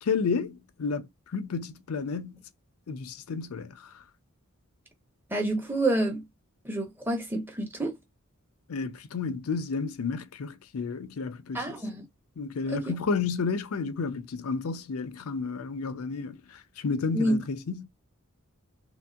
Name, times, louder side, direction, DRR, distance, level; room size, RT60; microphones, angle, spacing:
voice 1, 0.0-2.4 2.9-3.9 8.7-11.7 12.4-17.8, left 4 dB, 80° left, 0.5 m, -31 dB
voice 2, 5.3-6.2 6.6-7.9 11.5-12.0 12.7-12.8 17.1-17.4, right 1 dB, 10° right, 0.8 m, -28 dB
3.1 x 2.7 x 2.3 m
head